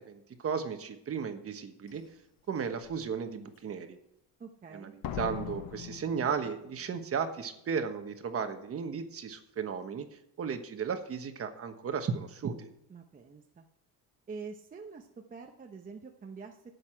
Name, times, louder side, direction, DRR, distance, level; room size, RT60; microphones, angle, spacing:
voice 1, 0.0-2.0 2.5-4.0 4.7-10.1 10.4-12.7, right 6 dB, 40° right, 7 dB, 1.2 m, -35 dB
Slam, 1.9-2.0 2.6-3.0 5.0-6.9 7.2-7.3, left 10 dB, 65° left, 1.0 m, -41 dB
voice 2, 4.4-4.9 12.9-13.7 14.3-16.6, right 5 dB, 25° right, 3 dB, 0.8 m, -46 dB
12.0 x 8.2 x 4.5 m, 0.78 s
cardioid pair, 130°, 36 cm